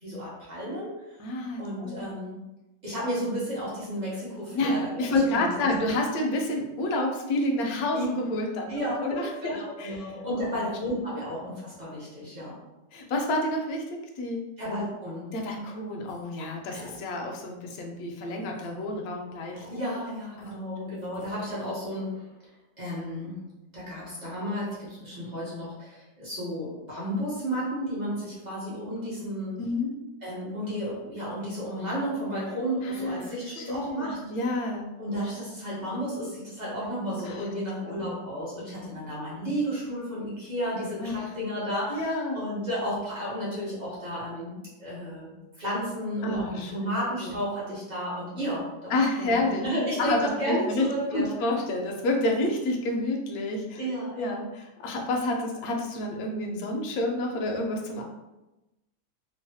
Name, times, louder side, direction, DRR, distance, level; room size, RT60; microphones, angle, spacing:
voice 1, 0.0-1.2 1.6-2.4 2.8-5.7 7.9-8.1 8.7-12.6 14.6-15.3 19.7-22.3 22.8-23.4 23.7-29.6 30.2-34.2 35.0-51.3 53.8-54.4, equal, 55° right, -8 dB, 0.5 m, -33 dB
voice 2, 1.2-2.1 4.5-10.0 10.4-10.6 12.9-14.5 15.3-19.8 20.4-20.5 29.6-30.0 32.8-34.9 37.3-37.5 37.9-38.1 41.0-41.3 41.9-42.4 46.2-46.7 47.0-47.4 48.9-49.7 50.0-50.2 50.4-50.8 51.1-53.8 54.2-54.5 54.8-58.0, left 2 dB, 70° left, 1 dB, 0.9 m, -29 dB
sound 1, 16.1-16.3 16.7-17.0 17.3-17.5 18.0-18.2 18.4-18.9 19.5-20.6 20.9-21.7, right 2 dB, 85° right, 1.3 m, -51 dB
3.2 x 2.0 x 2.6 m, 1.0 s
omnidirectional pair, 2.0 m